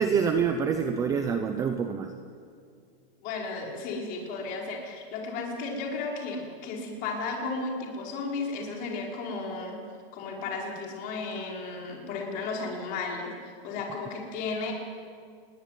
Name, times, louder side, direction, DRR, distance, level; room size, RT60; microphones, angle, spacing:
voice 1, 0.0-2.1, right 6 dB, 10° right, 7 dB, 0.8 m, -26 dB
voice 2, 3.2-9.8 10.1-14.7, left 3 dB, 30° left, 0 dB, 5.4 m, -34 dB
28.5 x 21.5 x 9.5 m, 2.2 s
supercardioid pair, 175°, 30 cm